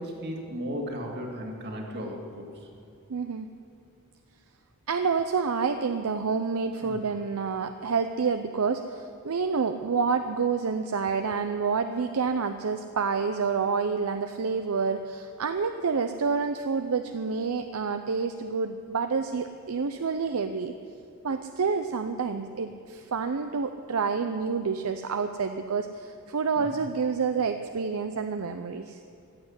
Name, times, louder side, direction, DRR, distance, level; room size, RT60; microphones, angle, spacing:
voice 1, 0.0-2.5 6.8-6.9 26.7-26.8, equal, 50° right, 1 dB, 2.2 m, -35 dB
voice 2, 3.1-3.5 4.9-20.7 21.2-29.0, right 5 dB, 70° right, 8 dB, 0.6 m, -28 dB
15.0 x 7.9 x 9.5 m, 2.5 s
head